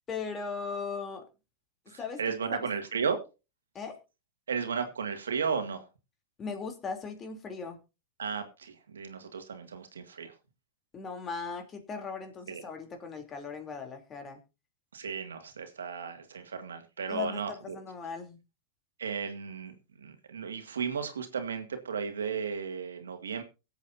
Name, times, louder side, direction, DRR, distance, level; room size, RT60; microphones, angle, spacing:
voice 1, 0.1-1.2 2.0-2.7 3.7-4.0 6.4-7.8 10.9-14.4 17.1-18.4, left 5 dB, 25° left, 5 dB, 3.3 m, -38 dB
voice 2, 1.9-3.2 4.5-5.8 8.2-10.3 12.5-12.6 14.9-17.8 19.0-23.4, right 6 dB, 85° right, 7 dB, 2.0 m, -34 dB
23.0 x 8.1 x 2.7 m, 0.29 s
hypercardioid pair, 105°, 0 cm